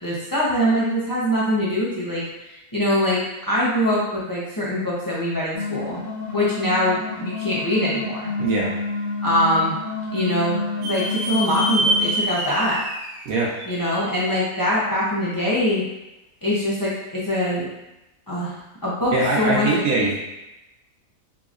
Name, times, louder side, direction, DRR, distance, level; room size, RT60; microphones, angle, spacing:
voice 1, 0.0-3.2 3.5-6.0 6.3-8.3 9.2-9.8 10.1-12.8 13.6-15.8 16.4-17.7 18.3-19.8, equal, 30° left, -8 dB, 0.4 m, -23 dB
sound 1, 5.5-12.1, left 3 dB, 65° left, 1.2 m, -29 dB
voice 2, 8.4-8.7 13.3-13.5 19.1-20.1, right 2 dB, 90° right, -4 dB, 1.2 m, -21 dB
sound 2, 10.8-14.3, right 1 dB, 65° right, 0.7 m, -26 dB
3.7 x 2.9 x 2.4 m, 0.95 s
omnidirectional pair, 1.5 m